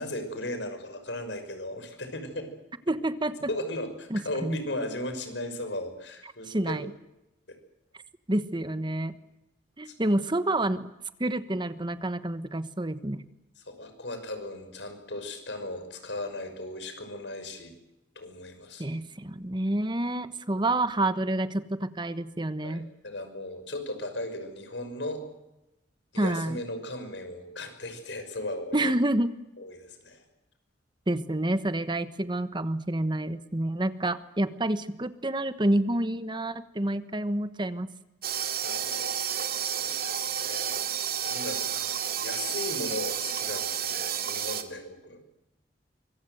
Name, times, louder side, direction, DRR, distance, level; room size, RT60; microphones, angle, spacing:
voice 1, 0.0-2.5 3.5-6.8 9.9-10.0 13.6-17.7 18.2-18.9 22.6-25.2 26.1-28.9 29.6-30.2 38.6-39.1 39.6-40.8 41.2-45.2, left 1 dB, 85° left, 8 dB, 6.0 m, -37 dB
voice 2, 2.9-3.5 4.1-4.6 6.5-6.9 8.3-9.1 9.8-10.9 11.2-13.2 18.8-22.9 26.2-26.6 28.7-29.3 31.1-37.9, right 1 dB, 25° right, 12 dB, 1.2 m, -28 dB
sound 1, 38.2-44.6, right 9 dB, 55° right, 2.6 m, -31 dB
25.0 x 24.0 x 8.0 m, 0.94 s
head